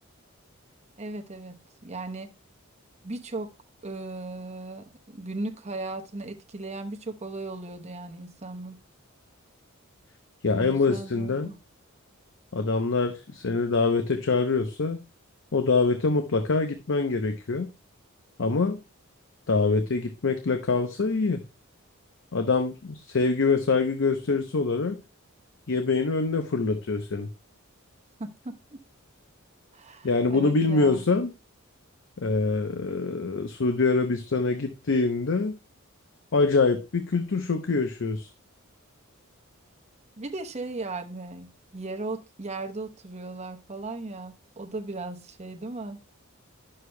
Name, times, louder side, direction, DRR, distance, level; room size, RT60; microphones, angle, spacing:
voice 1, 1.0-2.3 3.0-3.5 3.8-8.8 10.5-11.6 28.2-28.8 29.7-31.0 40.2-46.0, right 2 dB, 30° right, 0.9 m, -37 dB
voice 2, 10.4-11.5 12.5-15.0 15.5-17.7 18.4-18.8 19.5-21.4 22.3-25.0 25.7-27.3 30.0-31.3 32.2-35.6 36.3-38.3, left 3 dB, 60° left, 0.7 m, -25 dB
11.0 x 6.6 x 2.2 m
head